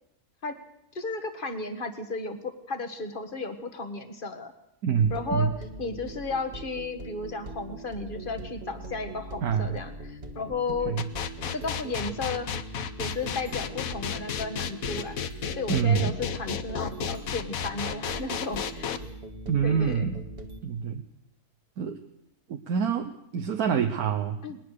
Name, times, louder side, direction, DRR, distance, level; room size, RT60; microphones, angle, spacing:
voice 1, 0.9-4.5 5.1-5.5 5.8-10.9 11.5-12.5 13.0-18.9 19.6-20.1 24.4-24.6, left 3 dB, 35° left, 8 dB, 1.7 m, -34 dB
voice 2, 4.8-5.5 9.4-9.8 10.9-11.0 15.7-16.1 19.5-20.2 20.6-21.0 21.8-22.0 22.5-24.6, right 7 dB, 75° right, 6 dB, 1.4 m, -26 dB
sound 1, 5.0-20.6, right 2 dB, 40° right, 1.7 m, -41 dB
sound 2, 11.0-19.0, left 8 dB, 65° left, 1.3 m, -32 dB
20.5 x 20.0 x 6.7 m, 0.82 s
omnidirectional pair, 1.6 m